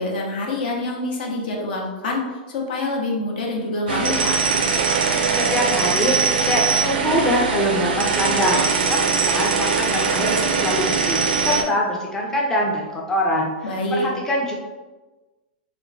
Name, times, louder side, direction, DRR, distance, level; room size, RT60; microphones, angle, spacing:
voice 1, 0.0-4.4 13.6-14.1, left 2 dB, 70° left, 0 dB, 0.7 m, -26 dB
sound 1, 3.9-11.6, right 5 dB, 85° right, 0.4 m, -21 dB
voice 2, 5.4-6.1 6.4-8.6 8.9-13.5 13.9-14.5, left 1 dB, 10° left, -2 dB, 0.4 m, -23 dB
2.9 x 2.1 x 2.6 m, 1.2 s
hypercardioid pair, 135°, 5 cm